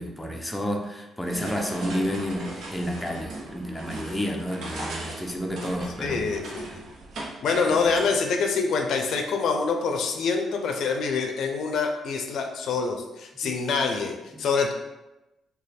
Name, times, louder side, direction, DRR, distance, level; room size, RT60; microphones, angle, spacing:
voice 1, 0.0-6.4 13.4-13.6 14.3-14.4, equal, 5° left, 1 dB, 0.5 m, -30 dB
sound 1, 1.2-8.2, right 2 dB, 70° right, 0.8 m, -38 dB
voice 2, 6.0-6.8 7.4-14.7, left 4 dB, 70° left, 4 dB, 0.4 m, -26 dB
3.1 x 2.3 x 4.1 m, 1.0 s
cardioid pair, 90°, 0 cm